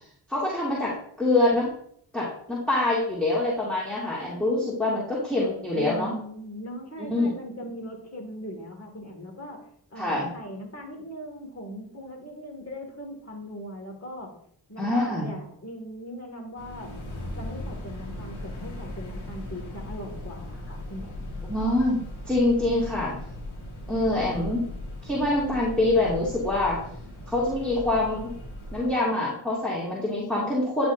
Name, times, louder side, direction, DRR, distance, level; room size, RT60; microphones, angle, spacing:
voice 1, 0.3-0.9 1.2-1.7 2.1-6.1 7.0-7.3 10.0-10.3 14.8-15.3 21.5-23.2 23.9-24.6 25.0-26.8 27.3-28.3 28.7-30.9, left 2 dB, ahead, -8 dB, 2.3 m, -25 dB
voice 2, 5.7-14.3 14.7-16.9 17.4-21.4 24.0-24.5, equal, 30° left, 1 dB, 2.2 m, -40 dB
sound 1, 16.6-28.9, left 1 dB, 80° left, 1.8 m, -38 dB
9.9 x 4.3 x 2.6 m, 0.66 s
cardioid pair, 40°, 47 cm